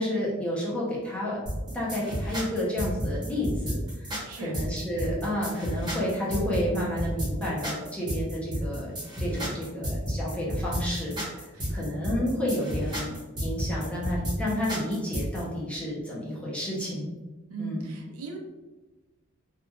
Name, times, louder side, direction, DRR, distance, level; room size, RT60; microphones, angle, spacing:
voice 1, 0.0-1.4 1.7-8.9 9.2-11.4 11.7-13.1 13.4-17.1 17.6-17.9, left 1 dB, 5° left, -7 dB, 0.6 m, -30 dB
sound 1, 1.5-15.4, equal, 20° right, 0.9 m, -31 dB
voice 2, 4.3-4.6 11.5-11.7 17.5-18.4, right 3 dB, 85° right, 1 dB, 0.5 m, -38 dB
2.9 x 2.3 x 2.2 m, 1.2 s
head